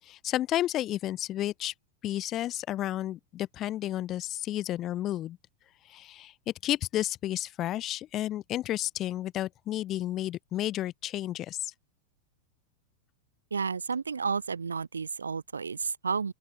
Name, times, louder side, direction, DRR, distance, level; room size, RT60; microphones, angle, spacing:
voice 1, 0.0-1.7 2.0-5.4 5.9-11.7, left 13 dB, 30° left, 2.7 m, -32 dB
voice 2, 13.5-16.3, right 5 dB, 75° right, 2.9 m, -31 dB
open air
figure-of-eight pair, 90°, 0 cm